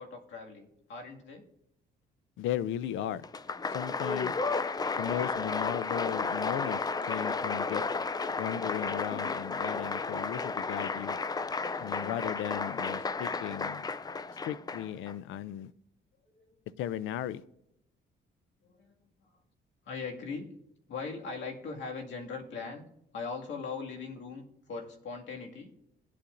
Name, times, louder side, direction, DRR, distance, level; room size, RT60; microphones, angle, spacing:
voice 1, 0.0-1.4 16.2-16.6 18.6-18.9 19.2-19.4 19.8-20.5 20.9-22.8 23.1-25.7, left 4 dB, 70° left, 1 dB, 2.1 m, -40 dB
voice 2, 2.4-3.2 3.7-4.3 5.0-7.8 8.4-11.2 11.8-13.9 14.4-15.7 16.8-17.4, left 11 dB, 85° left, 18 dB, 0.5 m, -36 dB
Applause, 3.2-15.1, left 4 dB, 20° left, 0.4 m, -33 dB
18.5 x 8.5 x 2.6 m, 0.80 s
cardioid pair, 90°, 20 cm